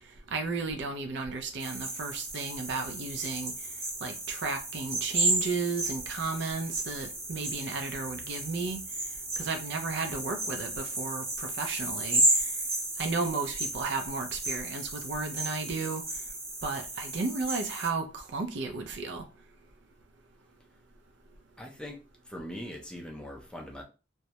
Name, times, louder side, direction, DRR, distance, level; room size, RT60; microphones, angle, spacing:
voice 1, 0.3-3.5 4.0-8.8 9.4-12.2 13.0-16.0 16.6-19.2, right 4 dB, 70° right, 0.4 m, -33 dB
sound 1, 1.6-17.9, right 2 dB, 35° right, 0.8 m, -33 dB
voice 2, 21.6-22.0 22.2-23.8, equal, 5° left, 0.4 m, -41 dB
2.2 x 2.0 x 2.7 m
head